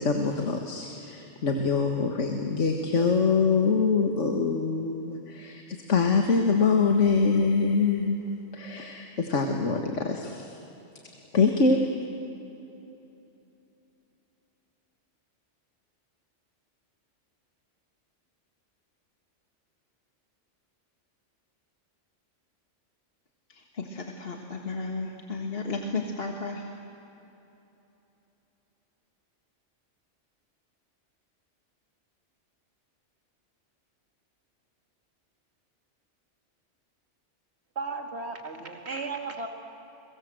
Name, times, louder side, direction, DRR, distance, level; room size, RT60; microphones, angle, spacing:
voice 1, 0.0-5.6 5.9-10.6 11.3-11.8, left 4 dB, 85° left, 4 dB, 1.9 m, -24 dB
voice 2, 23.5-26.6, left 3 dB, 55° left, 2 dB, 1.9 m, -34 dB
voice 3, 37.8-39.5, right 4 dB, 60° right, 3 dB, 2.6 m, -35 dB
30.0 x 23.0 x 7.8 m, 3.0 s
omnidirectional pair, 1.2 m